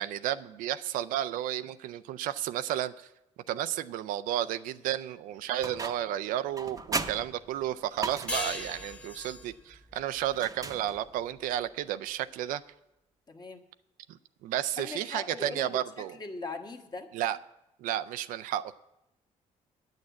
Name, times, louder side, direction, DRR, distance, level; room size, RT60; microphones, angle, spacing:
voice 1, 0.0-3.1 3.5-12.6 14.4-16.2 17.1-17.4 17.8-18.8, right 12 dB, 85° right, 13 dB, 0.4 m, -32 dB
sound 1, 5.6-6.2 6.6-8.7 10.3-11.3, right 3 dB, 25° right, 0.8 m, -37 dB
sound 2, 8.3-11.4, left 1 dB, 10° left, 1.3 m, -39 dB
voice 2, 13.3-13.6 14.8-17.1, left 3 dB, 30° left, 4 dB, 1.3 m, -40 dB
9.3 x 6.5 x 8.5 m, 0.88 s
cardioid pair, 85°, 14 cm